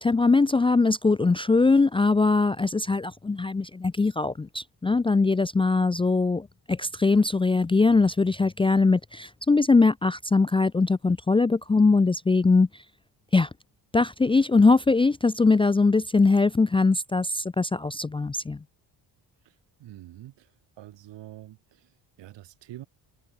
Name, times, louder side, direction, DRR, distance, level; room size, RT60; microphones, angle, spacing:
voice 1, 0.0-12.8 13.3-13.5 13.9-18.6, left 3 dB, 10° left, 0.5 m, -21 dB
voice 2, 19.8-20.5 20.8-21.9 22.2-22.9, right 14 dB, 70° right, 4.5 m, -45 dB
cardioid pair, 135°, 44 cm